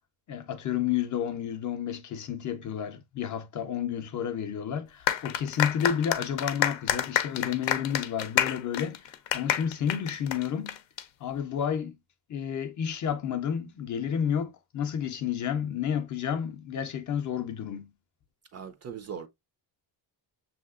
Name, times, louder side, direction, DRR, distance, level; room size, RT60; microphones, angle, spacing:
voice 1, 0.3-10.8 11.2-12.0 12.3-17.9, left 8 dB, 45° left, 0.5 m, -31 dB
sound 1, 5.1-11.0, left 11 dB, 85° left, 0.6 m, -28 dB
voice 2, 18.5-19.3, right 7 dB, 40° right, 0.4 m, -39 dB
6.3 x 2.8 x 2.3 m
cardioid pair, 165°, 44 cm